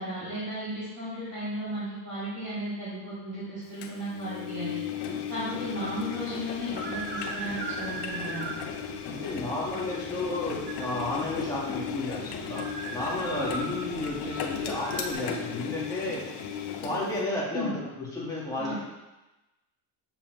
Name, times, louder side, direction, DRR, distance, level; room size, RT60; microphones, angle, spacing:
voice 1, 0.0-4.8 5.3-8.5 17.5-17.7 18.6-18.7, equal, 30° right, -12 dB, 2.5 m, -35 dB
Engine, 3.8-17.2, left 7 dB, 55° left, 0.8 m, -36 dB
sound 1, 6.5-15.1, right 4 dB, 55° right, 1.2 m, -40 dB
voice 2, 9.1-16.2 16.8-18.7, left 2 dB, 5° left, -7 dB, 1.7 m, -32 dB
7.3 x 6.8 x 3.1 m, 1.0 s
cardioid pair, 175°, 48 cm